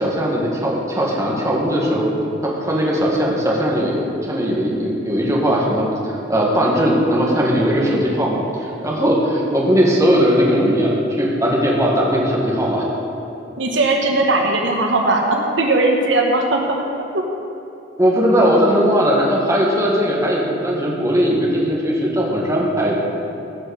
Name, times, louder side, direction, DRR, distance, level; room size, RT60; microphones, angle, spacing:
voice 1, 0.0-2.1 2.4-12.9 18.0-23.0, equal, 15° right, -3 dB, 1.8 m, -18 dB
voice 2, 13.6-16.8 17.1-17.2, right 2 dB, 75° right, 2 dB, 1.2 m, -18 dB
16.5 x 6.1 x 6.6 m, 2.8 s
head